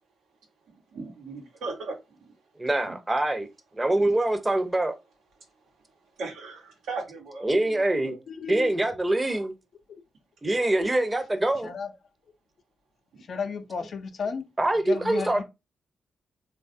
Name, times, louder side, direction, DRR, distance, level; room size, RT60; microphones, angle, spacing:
voice 1, 0.9-1.9 2.8-2.9 4.0-4.1 6.2-8.2 13.1-13.2 15.3-15.4, right 3 dB, 80° right, 0.9 m, -38 dB
voice 2, 2.6-3.5 3.7-4.9 7.4-8.1 8.5-9.5 10.4-11.7 14.6-15.4, right 1 dB, 25° right, 0.7 m, -24 dB
voice 3, 8.3-8.7 11.6-11.9 13.3-14.4 14.8-15.4, left 5 dB, 65° left, 0.5 m, -33 dB
3.2 x 2.3 x 2.6 m
supercardioid pair, 45°, 0 cm